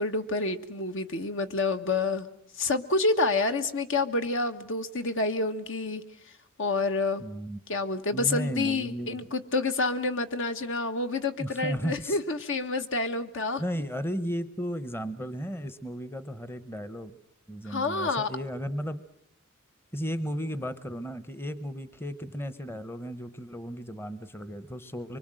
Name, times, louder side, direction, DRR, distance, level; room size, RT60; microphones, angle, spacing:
voice 1, 0.0-2.3 2.6-6.0 6.6-7.2 7.7-13.6 17.6-18.3, left 3 dB, 60° left, 8 dB, 1.4 m, -28 dB
voice 2, 7.2-7.6 8.1-9.3 11.4-12.2 13.6-17.2 17.5-19.0 19.9-25.2, equal, 10° left, 13 dB, 0.9 m, -34 dB
24.5 x 24.0 x 7.7 m, 0.75 s
head